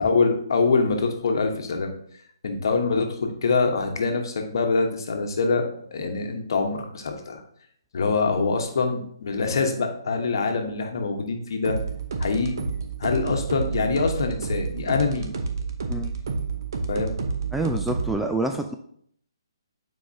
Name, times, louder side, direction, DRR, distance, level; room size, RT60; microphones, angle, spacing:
voice 1, 0.0-1.9 2.4-5.7 5.9-7.4 7.9-11.8 12.2-12.6 13.0-15.3 16.9-17.1, left 4 dB, 60° left, 4 dB, 1.1 m, -24 dB
sound 1, 11.6-18.1, right 4 dB, 55° right, 0.9 m, -29 dB
voice 2, 17.5-18.7, right 2 dB, 5° right, 3 dB, 0.3 m, -27 dB
8.4 x 4.7 x 2.7 m, 0.64 s
figure-of-eight pair, 140°, 2 cm